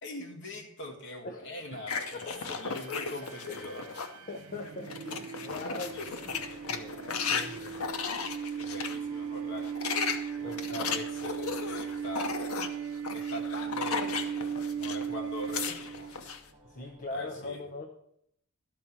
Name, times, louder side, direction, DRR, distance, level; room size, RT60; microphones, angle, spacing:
voice 1, 0.0-3.8 5.8-6.5 7.8-8.0 8.6-9.7 10.3-10.6 10.9-12.4 13.1-16.3 17.1-17.6, left 2 dB, 55° left, 1 dB, 1.6 m, -43 dB
voice 2, 1.2-1.6 2.1-2.4 3.4-3.7 4.3-7.0 7.3-7.9 10.4-11.0 15.1-15.2 16.6-17.9, left 2 dB, 40° left, 3 dB, 0.7 m, -41 dB
sound 1, 1.7-16.2, right 7 dB, 75° right, 0.6 m, -38 dB
sound 2, 1.9-4.2 4.6-9.0 9.5-15.1 15.3-16.4, left 5 dB, 90° left, 0.9 m, -35 dB
sound 3, 5.6-17.0, left 1 dB, 35° right, 1.6 m, -54 dB
12.5 x 4.2 x 7.3 m, 0.73 s
head